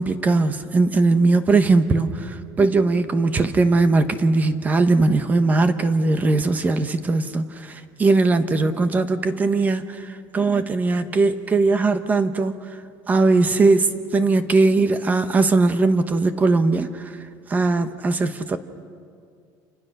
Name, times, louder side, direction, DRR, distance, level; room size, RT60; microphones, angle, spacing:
voice 1, 0.0-12.6 13.1-17.2 17.5-18.6, right 3 dB, 15° right, 11 dB, 1.0 m, -20 dB
28.5 x 27.5 x 6.6 m, 2.3 s
cardioid pair, 175°, 9 cm